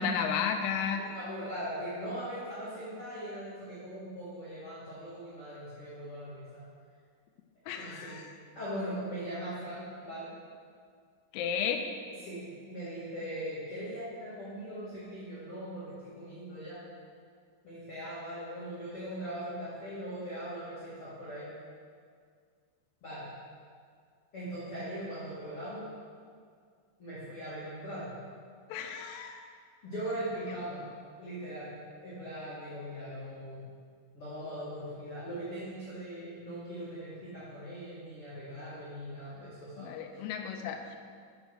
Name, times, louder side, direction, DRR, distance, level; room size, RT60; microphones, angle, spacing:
voice 1, 0.0-1.1 7.7-8.3 11.3-11.8 28.7-29.4 39.8-41.0, left 7 dB, 90° left, 4 dB, 3.3 m, -33 dB
voice 2, 0.9-6.6 7.7-8.2 8.5-10.3 12.2-16.8 17.6-21.5 23.0-23.2 24.3-25.8 27.0-28.1 29.0-29.3 29.8-30.8 31.2-31.7 32.0-33.6 34.1-39.9, equal, 40° left, -12 dB, 2.1 m, -40 dB
8.0 x 7.0 x 6.4 m, 2.1 s
omnidirectional pair, 5.9 m